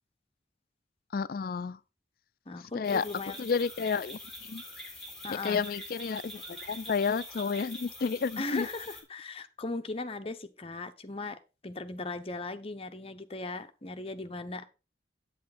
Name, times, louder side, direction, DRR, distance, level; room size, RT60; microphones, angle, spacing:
voice 1, 1.1-1.8 2.7-3.0 3.4-4.6 5.3-8.7, left 5 dB, 55° left, 0.4 m, -31 dB
voice 2, 2.5-3.4 5.2-5.6 8.4-11.4 11.6-14.7, left 3 dB, 35° left, 0.9 m, -38 dB
sound 1, 2.8-9.0, left 1 dB, ahead, 3.6 m, -45 dB
8.6 x 8.5 x 4.1 m
head